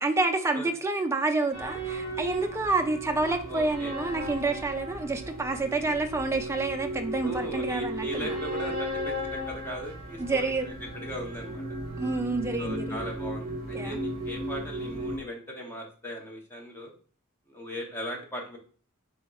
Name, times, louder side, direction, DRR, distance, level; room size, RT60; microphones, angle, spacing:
voice 1, 0.0-8.4 10.2-10.7 12.0-13.1 13.7-14.0, right 3 dB, 10° right, 0.3 m, -28 dB
sound 1, 1.5-15.2, right 1 dB, 40° right, 1.3 m, -35 dB
voice 2, 3.5-3.9 7.2-10.7 11.0-11.6 12.6-16.9 17.5-18.6, equal, 10° left, 0.8 m, -38 dB
4.1 x 3.5 x 2.3 m
head